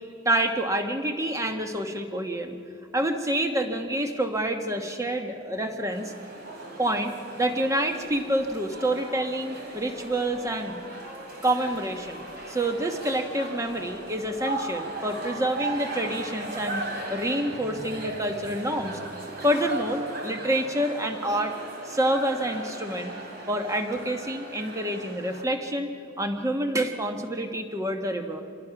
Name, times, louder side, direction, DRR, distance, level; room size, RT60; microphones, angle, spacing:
voice 1, 0.2-2.6 2.9-6.1 6.8-10.8 11.4-16.8 17.1-19.0 19.4-21.5 21.8-23.1 23.5-25.9 26.2-28.4, right 1 dB, 15° right, 5 dB, 1.2 m, -27 dB
sound 1, 5.9-25.4, right 2 dB, 50° right, 3.1 m, -38 dB
sound 2, 7.7-15.5, right 1 dB, 75° right, 7.3 m, -47 dB
26.0 x 21.0 x 5.9 m, 2.7 s
head